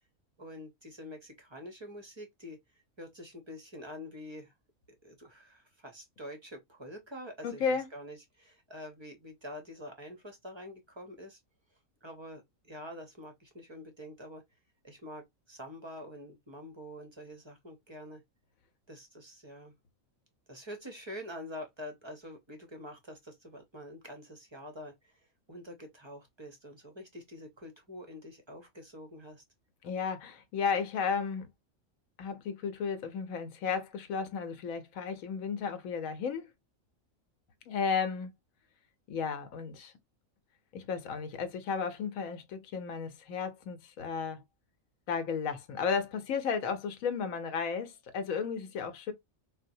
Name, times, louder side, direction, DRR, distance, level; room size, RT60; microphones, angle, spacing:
voice 1, 0.4-2.6 3.0-4.5 5.0-11.4 12.0-14.4 14.8-18.2 18.9-19.7 20.5-29.4, left 1 dB, 35° right, 0.5 m, -46 dB
voice 2, 7.4-7.9 29.8-31.5 32.2-36.5 37.7-38.3 39.1-39.9 40.7-44.4 45.1-49.1, left 6 dB, 80° left, 1.0 m, -33 dB
3.9 x 2.1 x 2.5 m
omnidirectional pair, 1.4 m